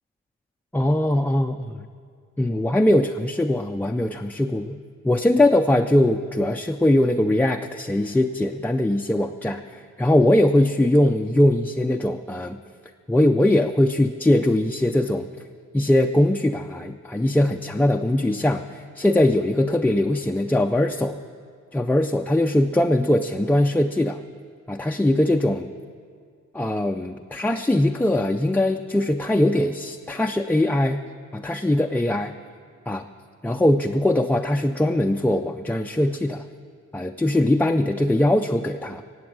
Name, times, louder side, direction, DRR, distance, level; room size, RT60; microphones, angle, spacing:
voice 1, 0.7-1.8 2.4-4.8 5.0-12.6 13.1-15.3 15.7-21.2 21.7-24.2 24.7-25.7 26.5-31.0 31.3-32.3 32.9-33.1 33.4-36.5 36.9-39.0, left 1 dB, 5° left, 4 dB, 0.4 m, -21 dB
17.5 x 8.2 x 7.5 m, 2.1 s
cardioid pair, 95°, 30 cm